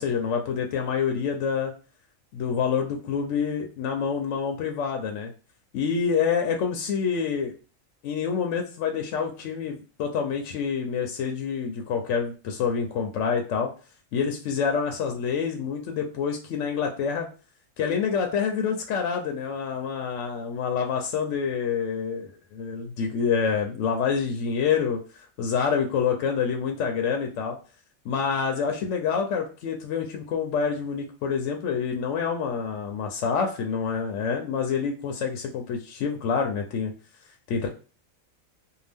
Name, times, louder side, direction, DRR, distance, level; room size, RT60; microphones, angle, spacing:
voice 1, 0.0-1.7 2.3-5.3 5.7-7.5 8.0-13.7 14.1-17.3 17.8-25.0 25.4-27.6 28.0-36.9 37.5-37.7, left 6 dB, 70° left, 3 dB, 0.8 m, -27 dB
2.7 x 2.3 x 3.4 m, 0.36 s
omnidirectional pair, 1.4 m